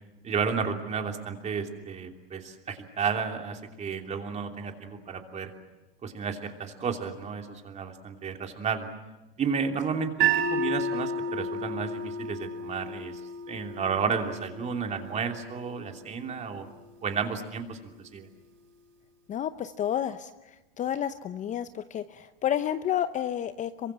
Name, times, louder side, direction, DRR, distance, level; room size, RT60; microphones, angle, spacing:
voice 1, 0.2-5.5 6.0-8.9 9.4-13.2 13.5-16.7 17.0-18.3, right 6 dB, 25° right, 4 dB, 3.1 m, -32 dB
sound 1, 10.2-16.4, right 3 dB, 40° right, 3.8 m, -32 dB
voice 2, 19.3-23.9, left 10 dB, 25° left, 11 dB, 0.8 m, -31 dB
26.5 x 24.0 x 7.6 m, 1.0 s
hypercardioid pair, 115°, 29 cm